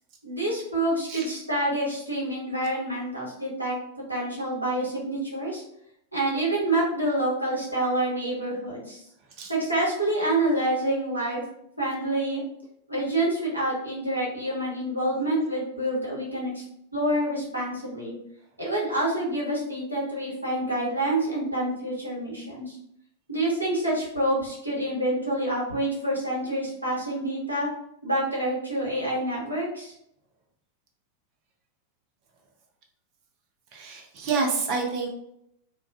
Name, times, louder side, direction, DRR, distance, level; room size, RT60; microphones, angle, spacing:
voice 1, 0.2-3.8 4.1-5.6 6.1-9.0 9.5-11.4 11.8-12.4 12.9-16.6 16.9-18.1 18.6-22.8 23.3-27.7 28.0-29.9, right 1 dB, 85° right, -4 dB, 0.9 m, -27 dB
voice 2, 33.7-35.1, right 4 dB, 40° right, 2 dB, 0.5 m, -28 dB
2.3 x 2.3 x 2.3 m, 0.75 s
figure-of-eight pair, 90°, 0 cm